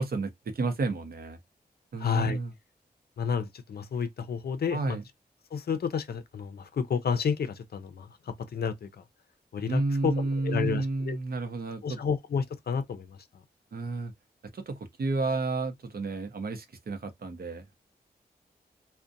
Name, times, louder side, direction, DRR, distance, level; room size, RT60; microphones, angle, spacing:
voice 1, 0.0-1.4 1.9-2.5 4.7-5.0 9.7-12.0 13.7-14.1 14.5-17.7, right 3 dB, 65° right, 0.6 m, -31 dB
voice 2, 2.0-2.4 3.2-5.0 5.5-9.0 9.5-11.2 11.8-13.2, left 6 dB, 70° left, 0.5 m, -31 dB
2.5 x 2.1 x 2.5 m
cardioid pair, 55°, 17 cm